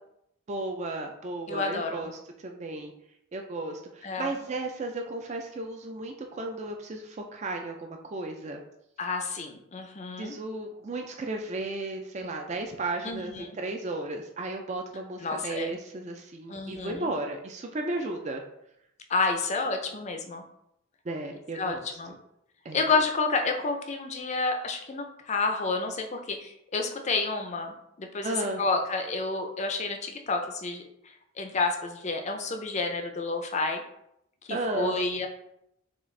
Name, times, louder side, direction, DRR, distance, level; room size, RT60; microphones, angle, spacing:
voice 1, 0.5-2.1 2.4-2.9 3.3-8.6 10.2-18.4 21.0-21.9 22.6-22.8 28.2-28.6 34.5-35.0, right 2 dB, 30° right, 3 dB, 0.4 m, -34 dB
voice 2, 1.5-2.1 4.0-4.3 9.0-10.3 13.0-13.5 15.2-15.7 16.5-17.1 19.1-20.4 21.5-22.1 22.7-30.8 31.4-33.8 34.5-35.3, left 3 dB, 30° left, 5 dB, 0.5 m, -30 dB
6.0 x 2.4 x 3.2 m, 0.80 s
head